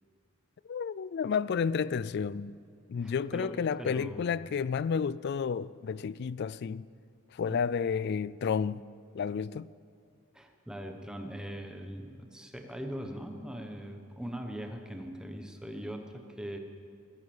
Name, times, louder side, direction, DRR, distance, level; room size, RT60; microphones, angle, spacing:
voice 1, 0.6-2.6 2.9-6.9 7.3-8.8 9.1-9.7, left 6 dB, 55° left, 0.3 m, -31 dB
voice 2, 3.0-4.3 7.5-7.7 10.3-16.6, equal, 5° right, 1.2 m, -41 dB
15.5 x 13.0 x 7.2 m
head